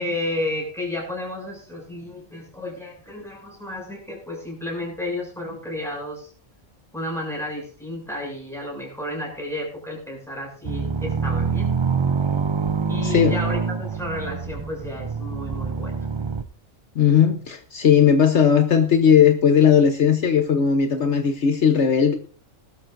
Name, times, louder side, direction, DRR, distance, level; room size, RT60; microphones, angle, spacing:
voice 1, 0.0-6.3 6.9-11.7 12.9-15.9, left 1 dB, ahead, -1 dB, 7.2 m, -32 dB
sound 1, 10.6-16.4, right 5 dB, 40° right, 0.4 m, -25 dB
voice 2, 13.0-13.3 17.0-22.2, left 7 dB, 65° left, 6 dB, 1.3 m, -17 dB
19.0 x 12.5 x 2.6 m, 0.43 s
omnidirectional pair, 1.3 m